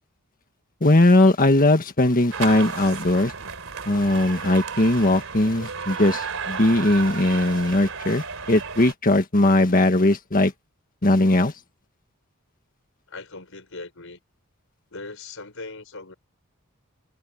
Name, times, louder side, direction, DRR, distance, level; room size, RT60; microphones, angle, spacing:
voice 1, 0.8-3.3 3.8-10.5 11.0-11.5, left 1 dB, 40° left, 1.7 m, -19 dB
sound 1, 2.3-8.9, right 5 dB, 65° right, 4.4 m, -33 dB
voice 2, 13.1-14.2 14.9-16.1, left 3 dB, 65° left, 5.9 m, -39 dB
head